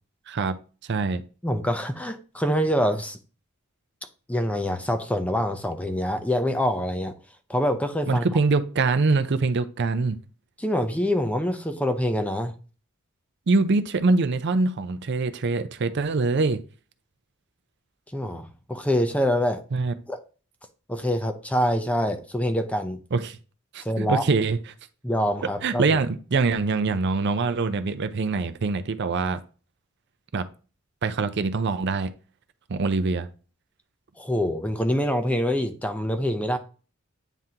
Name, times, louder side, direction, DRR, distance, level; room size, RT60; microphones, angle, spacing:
voice 1, 0.3-0.6 0.9-1.2 8.1-10.2 13.5-16.6 19.7-19.9 23.1-23.4 23.7-24.6 25.6-29.4 30.3-30.5 31.0-32.1 32.7-33.3, right 3 dB, 55° right, 0.5 m, -24 dB
voice 2, 1.4-3.2 4.3-7.1 7.5-8.3 10.6-12.5 18.1-19.6 20.1-20.2 20.9-23.0 23.8-24.2 25.0-26.0 34.2-36.6, equal, 5° left, 0.6 m, -25 dB
9.1 x 3.7 x 2.8 m
head